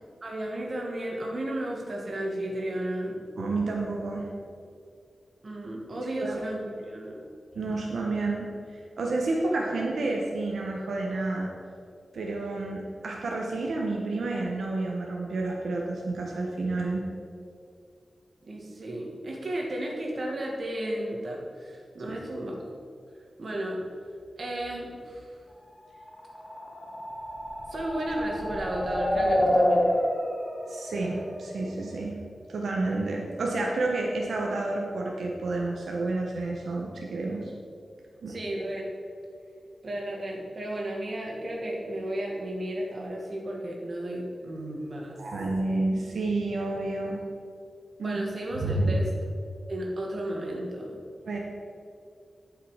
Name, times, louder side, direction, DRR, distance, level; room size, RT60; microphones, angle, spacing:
voice 1, 0.2-3.2 5.4-7.1 18.4-22.7 23.4-23.8 24.4-25.3 27.7-29.9 38.3-38.9 39.8-45.2 48.0-49.1 49.7-51.0, right 1 dB, 50° right, -1 dB, 1.9 m, -33 dB
voice 2, 3.4-4.3 6.2-6.4 7.5-11.5 12.1-17.1 22.1-22.2 30.7-32.2 32.5-37.5 38.2-38.4 45.2-47.2 48.0-48.2 48.6-49.0 51.2-51.4, right 2 dB, 85° right, -1 dB, 1.1 m, -30 dB
sound 1, 26.2-32.0, left 1 dB, 20° left, 1.2 m, -28 dB
11.0 x 5.7 x 5.0 m, 2.3 s
wide cardioid pair, 130°, 0 cm